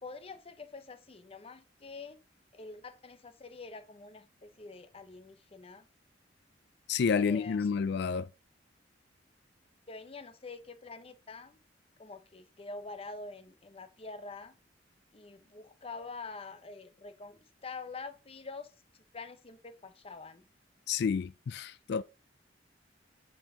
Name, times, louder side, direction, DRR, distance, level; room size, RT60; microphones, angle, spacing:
voice 1, 0.0-2.2 2.5-5.8 7.2-7.8 9.9-11.6 12.0-14.5 15.1-18.7 19.1-20.5, left 3 dB, 30° left, 0.7 m, -46 dB
voice 2, 6.9-8.3 20.9-22.0, left 6 dB, 60° left, 0.3 m, -30 dB
6.0 x 4.5 x 5.6 m
head